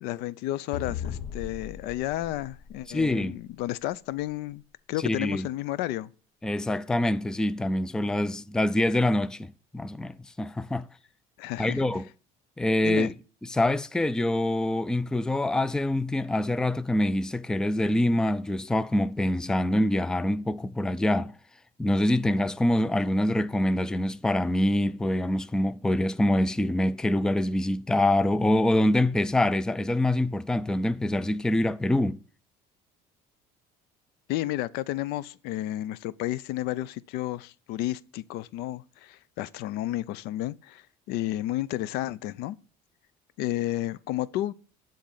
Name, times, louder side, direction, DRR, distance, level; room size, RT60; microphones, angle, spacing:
voice 1, 0.0-4.6 4.9-6.1 11.4-11.8 12.8-13.1 34.3-42.6 43.4-44.5, left 15 dB, 75° left, 0.5 m, -32 dB
sound 1, 0.7-3.4, left 8 dB, 50° left, 1.0 m, -38 dB
voice 2, 2.9-3.4 5.0-5.5 6.4-10.9 11.6-12.1 12.6-13.1 13.5-21.3 21.8-32.2, left 1 dB, 5° left, 0.4 m, -25 dB
11.5 x 3.9 x 7.1 m
cardioid pair, 120°, 16 cm